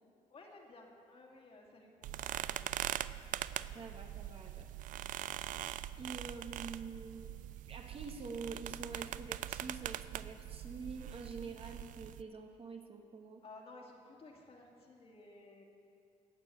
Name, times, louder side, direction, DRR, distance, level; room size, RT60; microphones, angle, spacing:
voice 1, 0.3-3.0 13.4-15.6, left 2 dB, 45° left, 0 dB, 2.4 m, -56 dB
sound 1, 2.0-12.2, right 12 dB, 70° right, 0.4 m, -42 dB
voice 2, 3.6-4.7 6.0-7.3 7.7-13.4, right 4 dB, 45° right, 4 dB, 1.4 m, -46 dB
16.5 x 6.2 x 8.7 m, 2.5 s
cardioid pair, 85°, 14 cm